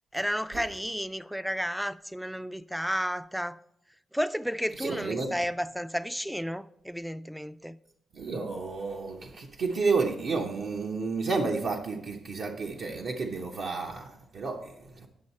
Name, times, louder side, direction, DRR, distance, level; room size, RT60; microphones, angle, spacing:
voice 1, 0.1-3.6 4.1-7.8, equal, ahead, 0.3 m, -32 dB
voice 2, 4.8-5.3 8.1-15.1, right 4 dB, 70° right, 0.8 m, -31 dB
9.7 x 6.2 x 4.2 m
cardioid pair, 85°, 0 cm